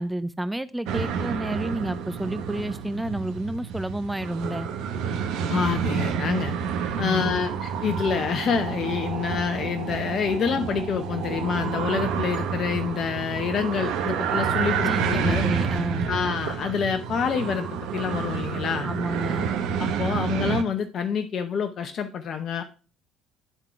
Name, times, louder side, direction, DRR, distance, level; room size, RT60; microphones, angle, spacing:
voice 1, 0.0-4.7 6.9-7.3 14.7-16.1 18.8-19.5, right 1 dB, 10° right, 0.6 m, -30 dB
sound 1, 0.9-20.6, right 7 dB, 70° right, 0.8 m, -29 dB
voice 2, 5.5-6.5 7.0-15.4 16.1-17.7 17.9-18.9 19.8-22.6, left 6 dB, 50° left, 0.7 m, -27 dB
9.2 x 3.7 x 4.5 m
hypercardioid pair, 60°, 0 cm